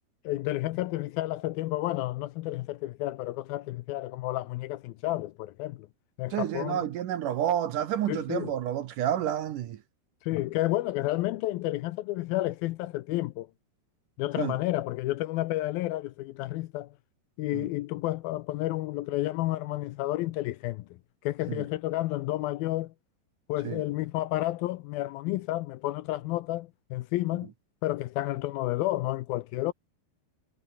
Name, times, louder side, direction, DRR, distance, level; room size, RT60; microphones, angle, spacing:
voice 1, 0.2-5.9 6.2-6.8 8.1-8.6 10.2-13.5 14.2-16.9 17.4-20.9 21.2-22.9 23.5-27.5 27.8-29.7, left 17 dB, 75° left, 2.3 m, -31 dB
voice 2, 6.3-9.8 14.4-14.6 17.5-17.7 21.5-21.6 23.6-23.8, right 10 dB, 65° right, 2.4 m, -30 dB
omnidirectional pair, 4.6 m